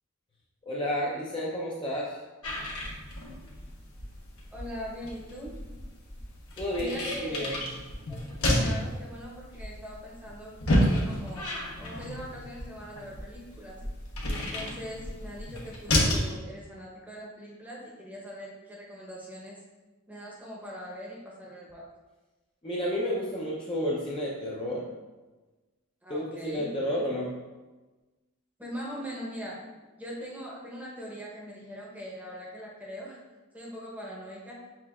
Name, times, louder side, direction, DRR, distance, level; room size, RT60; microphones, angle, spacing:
voice 1, 0.6-2.2 6.6-7.6 22.6-24.9 26.1-27.3, equal, 25° left, -5 dB, 0.5 m, -31 dB
sound 1, 2.4-16.3, left 1 dB, 75° left, 1.0 m, -31 dB
voice 2, 4.5-5.5 6.8-7.5 8.1-11.5 11.8-13.8 14.4-19.6 20.1-21.8 26.0-26.7 28.6-29.6 30.0-33.2 33.5-34.6, equal, 5° right, -4 dB, 0.8 m, -41 dB
5.8 x 3.2 x 2.3 m, 1.2 s
head